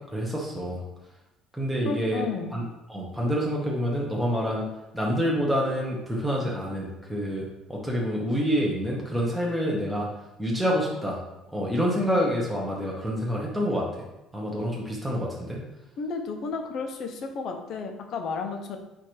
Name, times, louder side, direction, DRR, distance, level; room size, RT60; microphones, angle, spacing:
voice 1, 0.1-0.8 1.5-2.2 2.5-4.6 4.9-10.1 10.4-11.2 11.5-14.0 14.3-15.6, equal, ahead, -4 dB, 0.7 m, -27 dB
voice 2, 1.8-2.6 16.0-18.8, left 4 dB, 45° left, 4 dB, 0.6 m, -32 dB
4.7 x 2.5 x 4.4 m, 0.93 s
cardioid pair, 165°, 0 cm